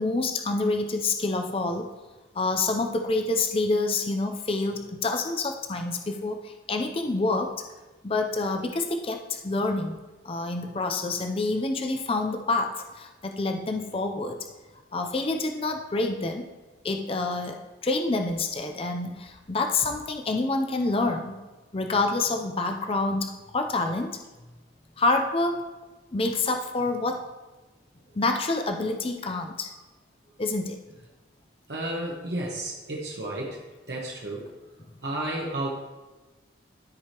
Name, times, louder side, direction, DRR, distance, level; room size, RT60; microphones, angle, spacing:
voice 1, 0.0-1.9 2.3-7.5 8.0-10.0 10.2-14.4 14.9-16.4 16.8-21.4 21.7-24.2 25.0-25.6 26.1-27.2 28.2-29.7 30.4-31.0, left 3 dB, 30° left, 4 dB, 0.5 m, -27 dB
voice 2, 31.7-33.6 33.9-34.5 35.0-35.7, right 1 dB, 60° right, -3 dB, 1.1 m, -32 dB
13.5 x 4.9 x 2.9 m, 1.2 s
head